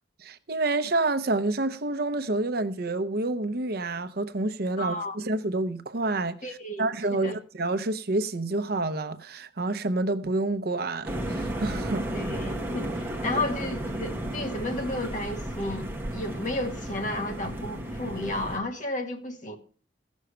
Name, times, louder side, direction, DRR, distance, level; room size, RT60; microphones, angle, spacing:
voice 1, 0.2-6.4 6.8-12.0, right 2 dB, 60° right, 0.8 m, -28 dB
voice 2, 4.8-5.2 6.4-7.3 12.1-19.6, left 1 dB, 45° left, 1.8 m, -33 dB
sound 1, 11.0-18.6, right 1 dB, 10° right, 1.5 m, -33 dB
15.5 x 6.3 x 6.7 m
head